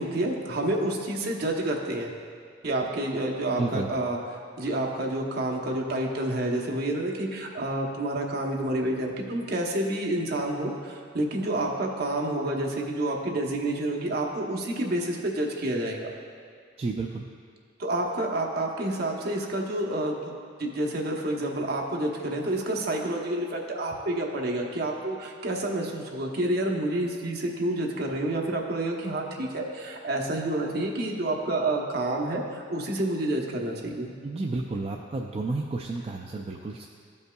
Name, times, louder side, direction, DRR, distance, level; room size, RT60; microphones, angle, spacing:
voice 1, 0.0-2.1 2.6-16.1 17.8-20.3 20.6-34.1, right 1 dB, 55° right, 0 dB, 0.9 m, -29 dB
voice 2, 3.6-3.9 16.8-17.3 34.2-36.9, right 3 dB, 30° right, 0 dB, 0.3 m, -31 dB
14.0 x 5.3 x 2.3 m, 2.1 s
head